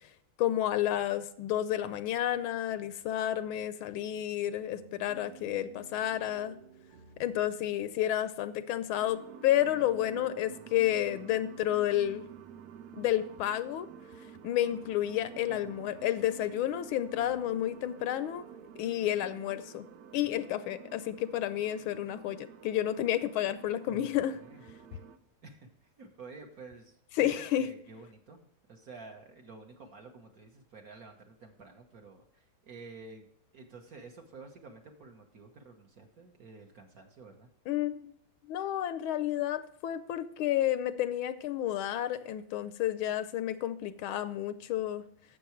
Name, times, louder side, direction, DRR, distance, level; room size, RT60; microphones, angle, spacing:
voice 1, 0.4-6.6 7.2-12.2 13.0-13.9 14.4-18.5 18.8-19.8 20.1-24.4 27.2-27.7 37.7-38.1 38.5-45.0, left 12 dB, 75° left, 13 dB, 1.3 m, -31 dB
sound 1, 4.8-18.8, right 7 dB, 85° right, 2.0 m, -55 dB
sound 2, 9.0-25.2, right 7 dB, 70° right, 0.9 m, -51 dB
voice 2, 15.4-15.8 23.9-24.1 24.4-24.6 24.9-25.0 25.4-33.3 33.5-37.5, right 3 dB, 50° right, 3 dB, 1.3 m, -51 dB
11.5 x 7.8 x 3.1 m, 0.70 s
omnidirectional pair, 2.4 m